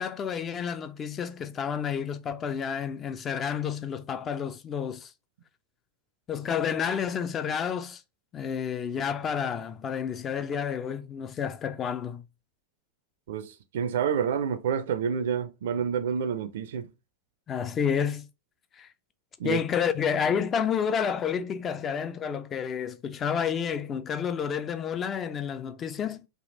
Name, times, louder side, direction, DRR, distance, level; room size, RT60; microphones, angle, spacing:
voice 1, 0.0-5.1 6.3-8.0 8.3-12.2 17.5-18.3 18.8-18.9 19.4-26.3, left 7 dB, 25° left, 0.3 m, -30 dB
voice 2, 13.3-16.9 19.4-19.6, right 7 dB, 55° right, 0.4 m, -28 dB
3.4 x 2.4 x 2.6 m
figure-of-eight pair, 90°, 0 cm